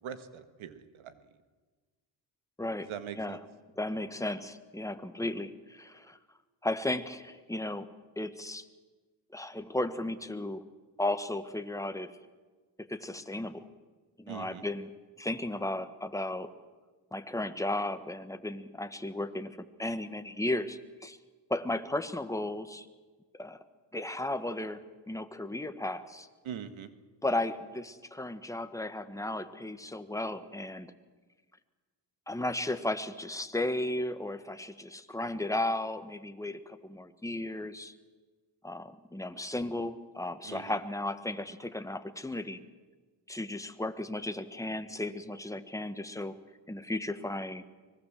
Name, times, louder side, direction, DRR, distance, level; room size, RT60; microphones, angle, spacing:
voice 1, 0.0-1.3 2.8-3.4 14.3-14.6 26.4-26.9 40.4-40.8, right 8 dB, 75° right, 11 dB, 1.8 m, -42 dB
voice 2, 2.6-2.9 3.2-3.4 3.8-6.2 6.6-7.9 8.1-8.7 9.3-10.6 11.0-12.1 12.8-13.7 14.2-14.9 15.2-16.5 17.1-21.2 21.5-22.9 23.4-23.6 23.9-24.8 25.1-26.3 27.2-30.9 32.3-37.9 38.6-42.6 43.3-46.4 46.7-47.6, left 1 dB, 5° left, 9 dB, 1.6 m, -35 dB
24.5 x 19.5 x 7.7 m, 1.4 s
cardioid pair, 75°, 48 cm